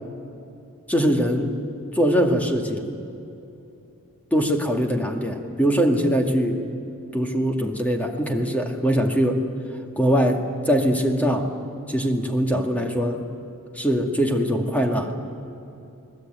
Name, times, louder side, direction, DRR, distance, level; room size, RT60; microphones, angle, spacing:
voice 1, 0.9-1.5 1.9-2.9 4.3-6.6 7.1-9.4 10.0-11.5 11.9-13.2 13.8-15.1, equal, 5° left, 3 dB, 2.1 m, -22 dB
29.5 x 20.0 x 9.1 m, 2.8 s
head